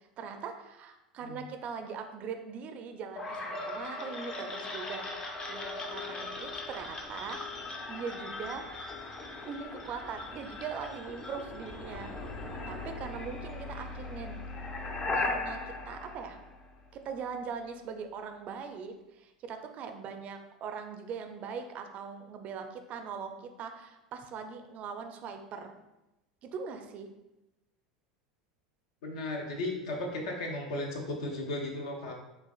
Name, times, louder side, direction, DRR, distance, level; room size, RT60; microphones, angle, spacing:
voice 1, 0.0-7.4 7.9-8.7 9.5-12.1 12.6-14.3 15.1-16.4 16.9-25.7 26.4-27.1, right 6 dB, 40° right, 6 dB, 0.5 m, -41 dB
sound 1, 3.2-17.0, left 2 dB, 25° left, 0.6 m, -38 dB
voice 2, 29.0-32.1, left 2 dB, 60° left, 1 dB, 0.8 m, -35 dB
6.6 x 2.4 x 2.3 m, 0.96 s
figure-of-eight pair, 80°, 4 cm